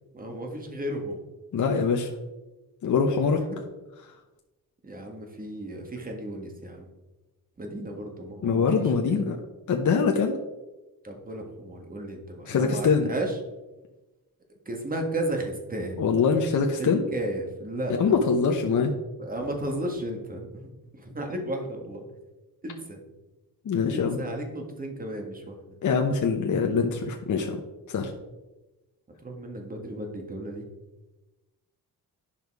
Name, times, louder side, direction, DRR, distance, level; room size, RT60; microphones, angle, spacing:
voice 1, 0.1-1.2 3.3-3.6 4.8-6.9 7.6-9.2 11.0-13.4 14.7-16.0 16.8-18.1 19.2-22.1 22.6-23.0 23.9-25.6 29.2-30.6, right 1 dB, 25° right, 2 dB, 1.6 m, -34 dB
voice 2, 1.5-2.1 2.8-3.4 8.4-9.4 9.7-10.4 12.5-13.1 16.0-17.0 18.0-18.9 23.6-24.2 25.8-27.6 27.9-28.1, left 5 dB, 55° left, 2 dB, 0.9 m, -23 dB
10.0 x 5.3 x 4.7 m, 1.1 s
wide cardioid pair, 140°, 36 cm